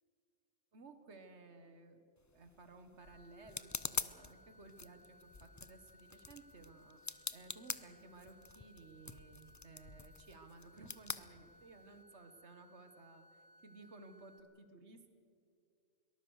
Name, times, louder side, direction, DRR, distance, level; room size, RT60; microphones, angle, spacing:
voice 1, 0.7-2.0 2.3-15.1, right 3 dB, 85° right, 8 dB, 1.7 m, -57 dB
sound 1, 2.2-12.0, left 4 dB, 25° left, 0.4 m, -46 dB
sound 2, 3.0-14.4, left 1 dB, 70° left, 1.6 m, -64 dB
23.0 x 19.0 x 6.5 m, 2.4 s
omnidirectional pair, 1.1 m